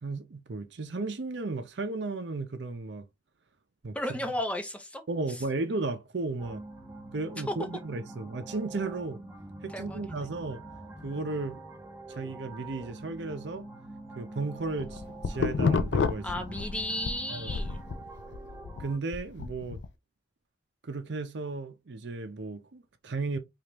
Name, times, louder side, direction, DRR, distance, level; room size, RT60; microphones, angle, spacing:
voice 1, 0.0-3.0 3.8-4.2 5.1-6.6 7.1-9.2 9.6-10.6 11.0-11.6 12.1-13.7 14.2-16.3 17.3-17.7 18.8-19.8 20.8-23.4, right 3 dB, 65° right, 0.6 m, -34 dB
voice 2, 3.9-5.0 7.5-7.6 9.7-10.0 16.2-17.8, left 1 dB, 5° left, 0.7 m, -33 dB
sound 1, 6.4-19.0, right 1 dB, 15° right, 1.5 m, -45 dB
sound 2, 14.6-17.1 17.5-19.9, left 4 dB, 65° left, 0.4 m, -29 dB
4.9 x 2.5 x 3.0 m
head